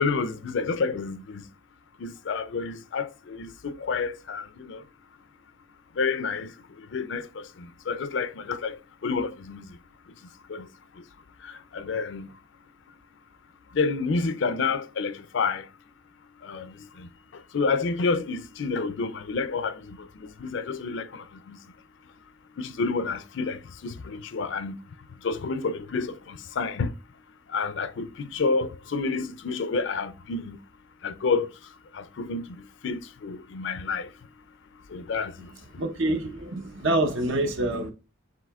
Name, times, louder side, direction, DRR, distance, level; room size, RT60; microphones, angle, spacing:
voice 1, 0.0-1.4 2.0-4.8 6.0-6.5 6.9-9.6 10.5-10.7 11.4-12.3 13.7-15.7 16.4-17.1 17.5-21.6 22.6-24.8 25.2-26.9 27.5-30.6 31.0-31.5 31.9-32.6 32.8-34.1 34.9-35.5, left 4 dB, 60° left, 0.4 m, -29 dB
voice 2, 35.8-37.9, right 1 dB, 70° right, 0.8 m, -26 dB
7.5 x 2.9 x 2.3 m
head